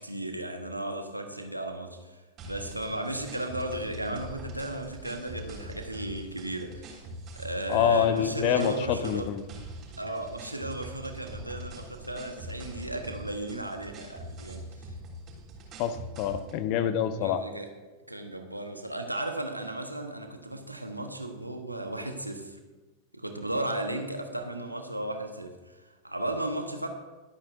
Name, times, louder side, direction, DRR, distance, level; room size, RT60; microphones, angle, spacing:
voice 1, 0.0-7.0 7.4-9.3 10.0-14.7 17.2-17.7 18.1-22.6 23.1-26.9, right 1 dB, 85° right, 5 dB, 1.1 m, -35 dB
sound 1, 2.4-16.6, right 1 dB, 30° right, 3.3 m, -43 dB
voice 2, 7.7-9.4 15.8-17.4, left 9 dB, 45° left, 12 dB, 0.8 m, -26 dB
22.5 x 8.6 x 2.6 m, 1.2 s
figure-of-eight pair, 90°, 0 cm